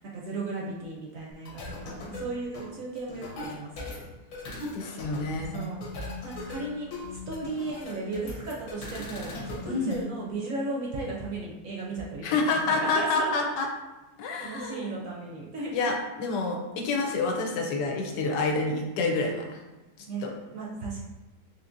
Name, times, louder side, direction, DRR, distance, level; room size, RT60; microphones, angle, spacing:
voice 1, 0.1-3.9 5.5-5.8 6.2-13.5 14.4-15.9 20.1-20.2 20.5-21.0, right 2 dB, 65° right, -3 dB, 0.8 m, -35 dB
sound 1, 1.5-10.0, left 2 dB, 65° left, 1.2 m, -40 dB
voice 2, 4.5-5.6 9.7-10.0 12.2-13.7 14.2-14.8 15.7-19.6 20.2-20.3, left 3 dB, 90° left, 1 dB, 1.3 m, -28 dB
3.6 x 2.9 x 2.5 m, 1.1 s
omnidirectional pair, 1.8 m